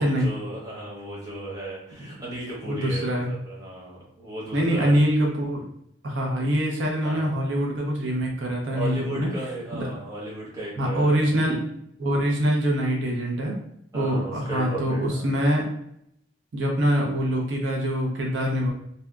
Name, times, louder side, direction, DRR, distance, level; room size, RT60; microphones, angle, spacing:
voice 1, 0.0-5.0 7.0-7.3 8.7-11.4 13.9-15.4, right 1 dB, 20° right, -6 dB, 0.9 m, -35 dB
voice 2, 2.6-3.3 4.5-5.6 6.0-9.3 9.7-10.0 10.8-11.6 12.0-13.6 13.9-15.7 16.5-18.7, equal, 85° right, -1 dB, 0.6 m, -24 dB
2.7 x 2.2 x 2.3 m, 0.73 s
head